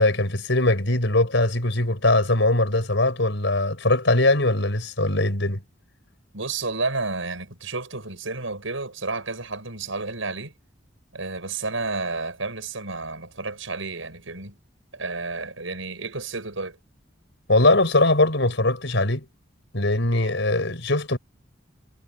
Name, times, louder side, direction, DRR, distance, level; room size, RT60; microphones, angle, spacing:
voice 1, 0.0-5.6 17.5-19.3 19.7-21.2, left 2 dB, 70° left, 4.9 m, -21 dB
voice 2, 6.3-10.5 11.1-14.6 14.9-16.8, right 3 dB, 90° right, 6.6 m, -31 dB
head